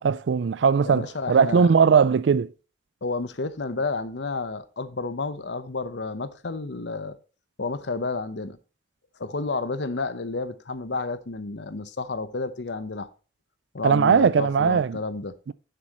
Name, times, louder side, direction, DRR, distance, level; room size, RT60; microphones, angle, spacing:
voice 1, 0.0-2.5 13.8-15.0 15.5-15.6, right 6 dB, 80° right, 0.4 m, -19 dB
voice 2, 0.8-1.7 3.0-7.2 7.6-8.6 9.2-13.1 13.7-15.3, left 3 dB, 75° left, 0.9 m, -31 dB
10.5 x 7.6 x 3.0 m
head